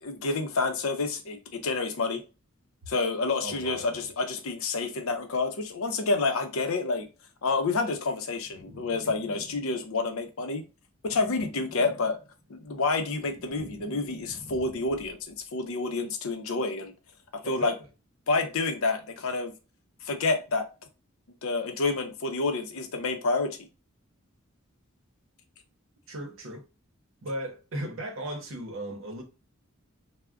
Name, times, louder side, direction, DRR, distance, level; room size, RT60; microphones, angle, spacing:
voice 1, 0.0-2.2 2.9-7.1 7.4-10.6 11.0-12.2 12.5-16.9 17.3-17.7 18.3-19.5 20.0-20.7 21.4-23.6, left 3 dB, 75° left, 0.5 m, -28 dB
voice 2, 3.4-4.0 17.4-17.8 26.1-26.7 27.2-29.2, right 1 dB, 65° right, 0.8 m, -36 dB
sound 1, 8.4-10.0 11.0-12.5 12.8-15.2, equal, 10° left, 0.9 m, -48 dB
2.2 x 2.1 x 3.5 m
head